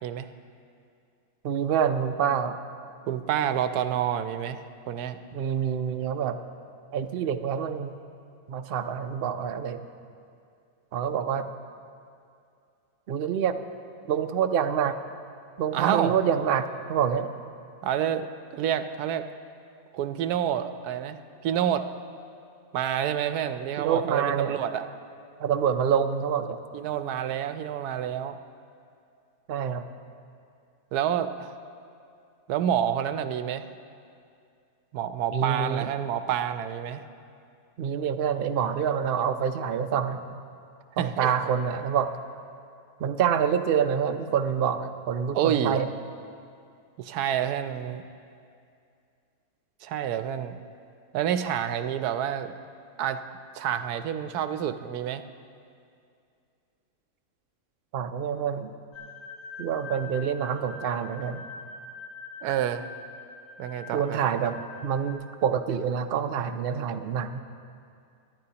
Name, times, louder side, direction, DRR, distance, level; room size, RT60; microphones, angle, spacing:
voice 1, 1.4-2.6 5.3-6.4 6.9-7.9 8.5-9.8 10.9-11.5 13.1-13.6 14.1-15.0 15.6-17.3 23.8-24.5 25.4-26.6 29.5-29.8 35.3-35.9 37.8-40.4 41.0-42.1 43.0-45.9 57.9-58.7 59.6-61.4 63.9-67.4, right 8 dB, 70° right, 8 dB, 0.5 m, -27 dB
voice 2, 3.1-5.2 15.7-16.1 17.8-19.2 19.9-21.9 22.7-24.9 26.7-28.4 30.9-31.5 32.5-33.7 34.9-37.0 41.0-41.3 45.3-45.8 47.0-48.0 49.8-50.6 51.1-52.5 53.0-53.2 53.5-55.2 62.4-62.9 63.6-64.2, right 10 dB, 85° right, 10 dB, 1.1 m, -28 dB
sound 1, 58.9-65.1, left 3 dB, 85° left, 1.6 m, -44 dB
24.0 x 10.5 x 2.8 m, 2.4 s
omnidirectional pair, 1.6 m